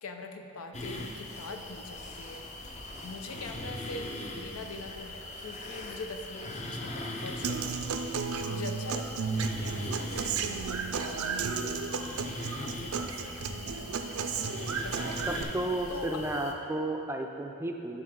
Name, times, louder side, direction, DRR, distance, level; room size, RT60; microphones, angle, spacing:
voice 1, 0.0-2.5 3.0-8.2 8.5-11.8 12.6-13.7 14.1-15.6 15.9-16.3, left 3 dB, 90° left, 4 dB, 0.7 m, -44 dB
sound 1, 0.7-16.5, left 1 dB, 35° left, 0.7 m, -41 dB
Human voice / Acoustic guitar, 7.4-15.4, right 5 dB, 80° right, 0.5 m, -33 dB
voice 2, 15.3-18.0, right 1 dB, 10° right, 3 dB, 0.4 m, -33 dB
12.0 x 5.2 x 3.8 m, 2.9 s
head